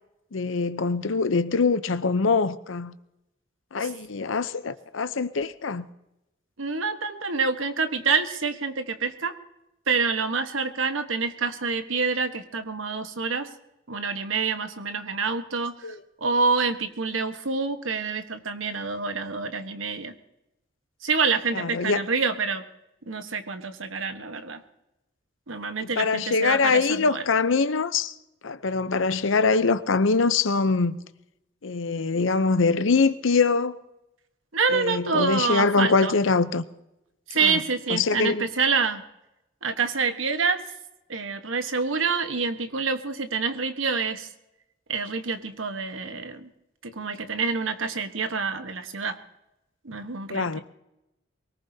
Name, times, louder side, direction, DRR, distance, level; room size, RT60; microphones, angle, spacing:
voice 1, 0.3-2.9 3.7-5.9 15.8-16.0 21.5-22.0 25.8-28.1 28.4-31.0 31.6-33.8 34.7-36.6 37.4-37.6 37.9-38.5 50.3-50.6, left 4 dB, 80° left, 0.7 m, -23 dB
voice 2, 6.6-9.3 9.9-13.5 13.9-15.9 16.2-20.1 21.0-22.6 23.1-24.6 25.5-27.2 34.5-36.2 37.3-39.0 39.6-40.6 41.1-44.3 44.9-46.5 46.8-49.2 49.8-50.6, right 4 dB, 85° right, 1.3 m, -27 dB
23.5 x 18.5 x 2.8 m
head